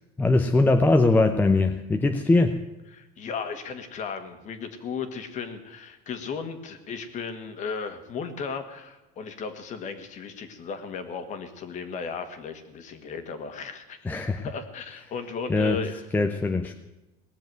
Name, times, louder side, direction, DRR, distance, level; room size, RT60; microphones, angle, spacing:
voice 1, 0.2-2.6 14.0-14.5 15.5-15.8 16.1-16.8, left 2 dB, 10° left, 5 dB, 0.7 m, -21 dB
voice 2, 2.9-14.0 14.4-16.0, left 5 dB, 35° left, 9 dB, 1.8 m, -35 dB
18.5 x 7.3 x 9.2 m, 1.0 s
cardioid pair, 145°, 20 cm